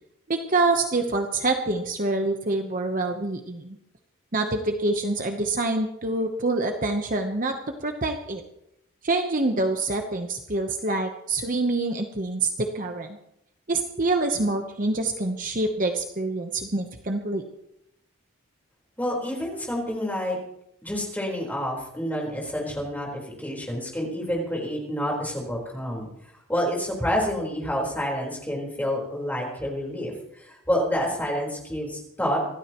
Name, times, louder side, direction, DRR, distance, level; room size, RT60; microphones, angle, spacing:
voice 1, 0.3-3.8 4.3-8.4 9.0-13.1 13.7-17.4, right 2 dB, 40° right, 5 dB, 0.9 m, -26 dB
voice 2, 19.0-20.4 20.8-26.1 26.5-32.4, equal, 10° left, -2 dB, 4.2 m, -28 dB
26.0 x 13.0 x 3.0 m, 0.80 s
head